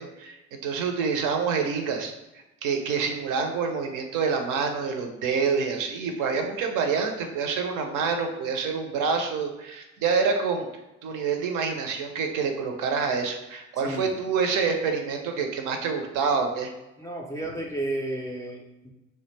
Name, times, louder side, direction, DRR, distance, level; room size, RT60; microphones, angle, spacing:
voice 1, 0.0-2.1 2.6-10.7 11.0-16.7, right 5 dB, 55° right, 5 dB, 0.5 m, -27 dB
voice 2, 17.0-18.9, right 1 dB, 10° left, -3 dB, 0.3 m, -32 dB
2.2 x 2.1 x 3.2 m, 0.97 s
hypercardioid pair, 60°, 37 cm